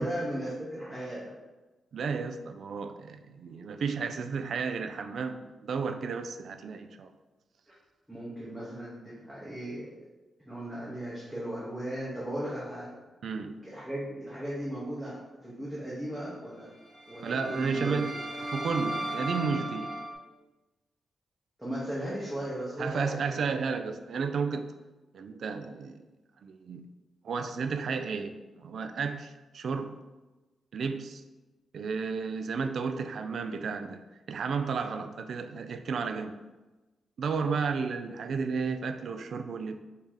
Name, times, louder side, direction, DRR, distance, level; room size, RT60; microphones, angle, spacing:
voice 1, 0.0-1.3 8.1-9.9 10.5-12.9 13.6-16.7 17.1-18.0 21.6-23.4, right 1 dB, ahead, -8 dB, 0.9 m, -36 dB
voice 2, 1.9-7.1 13.2-13.6 17.2-18.1 18.5-20.0 22.8-24.7 25.1-26.0 26.4-26.9 27.2-29.9 30.7-31.2 31.7-36.4 37.2-39.8, right 5 dB, 55° right, 8 dB, 0.3 m, -32 dB
sound 1, 16.7-20.1, right 1 dB, 40° left, 0.9 m, -36 dB
4.6 x 2.7 x 3.7 m, 1.1 s
wide cardioid pair, 170°, 0 cm